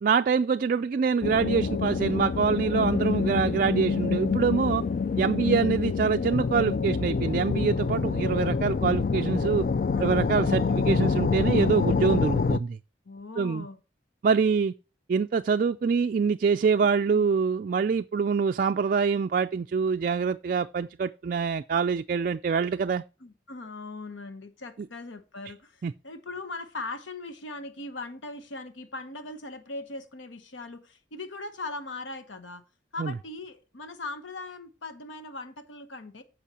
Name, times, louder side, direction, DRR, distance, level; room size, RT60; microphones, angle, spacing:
voice 1, 0.0-4.8 5.2-9.7 10.0-12.8 13.4-13.7 14.2-14.7 15.1-23.0 25.8-25.9 33.0-33.1, right 5 dB, 45° right, 0.3 m, -25 dB
sound 1, 1.2-12.6, left 5 dB, 50° left, 0.3 m, -26 dB
voice 2, 5.4-5.7 9.9-10.1 13.1-13.8 17.1-17.2 23.2-32.6 32.9-36.2, left 2 dB, 80° left, 1.0 m, -39 dB
15.0 x 5.5 x 2.8 m
head